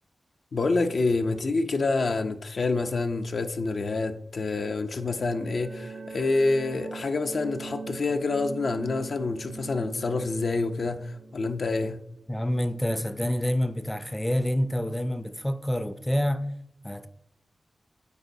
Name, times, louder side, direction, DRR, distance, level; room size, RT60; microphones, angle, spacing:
voice 1, 0.5-12.0, left 3 dB, 70° left, 0.4 m, -27 dB
sound 1, 4.5-13.1, right 4 dB, 60° right, 0.5 m, -42 dB
voice 2, 12.3-16.5 16.8-17.1, equal, 10° left, 0.4 m, -27 dB
8.1 x 4.5 x 2.6 m
cardioid pair, 65°, 0 cm